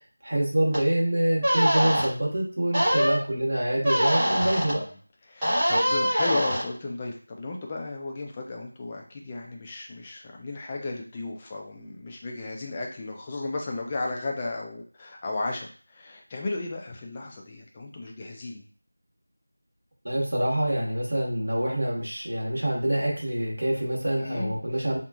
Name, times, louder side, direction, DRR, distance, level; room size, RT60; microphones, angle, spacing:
voice 1, 0.2-4.8 20.0-25.0, right 1 dB, 65° right, -3 dB, 1.3 m, -26 dB
sound 1, 0.7-0.8 1.4-2.1 2.7-3.2 3.8-4.7 5.4-6.6, equal, 10° right, 0.9 m, -23 dB
voice 2, 4.2-4.9 5.3-18.6 24.2-24.5, left 2 dB, 15° left, 0 dB, 0.4 m, -34 dB
2.9 x 2.5 x 2.3 m, 0.43 s
figure-of-eight pair, 175°, 0 cm